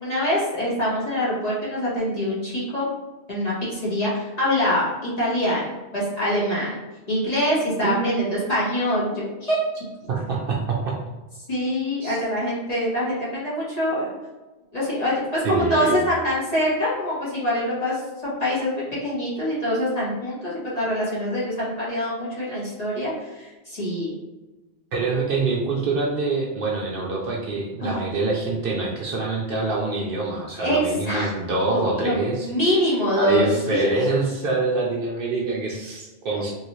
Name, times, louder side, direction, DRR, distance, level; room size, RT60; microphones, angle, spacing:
voice 1, 0.0-2.9 3.3-6.8 7.1-9.6 11.5-14.1 14.7-24.1 27.8-28.0 30.5-31.3 31.7-34.0, left 1 dB, 35° left, -9 dB, 1.4 m, -24 dB
voice 2, 7.8-8.3 10.1-10.9 12.0-12.2 15.4-16.0 24.9-32.5 33.2-36.5, right 3 dB, 60° right, -2 dB, 0.7 m, -25 dB
3.1 x 2.7 x 3.0 m, 1.1 s
omnidirectional pair, 1.1 m